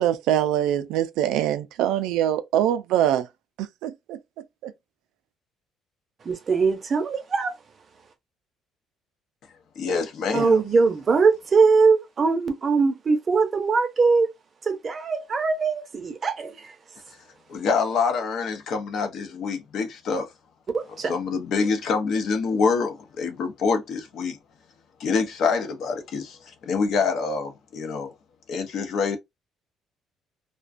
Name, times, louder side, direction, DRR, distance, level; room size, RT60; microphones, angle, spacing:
voice 1, 0.0-3.3 3.6-4.7, right 11 dB, 90° right, 0.3 m, -24 dB
voice 2, 6.2-7.5 10.3-14.3 14.7-16.7 20.7-21.1, right 4 dB, 30° right, 0.5 m, -21 dB
voice 3, 9.8-10.6 17.5-20.3 21.0-24.4 25.0-26.4 26.7-28.1 28.5-29.2, left 5 dB, 55° left, 0.6 m, -26 dB
2.4 x 2.2 x 2.4 m
cardioid pair, 140°, 0 cm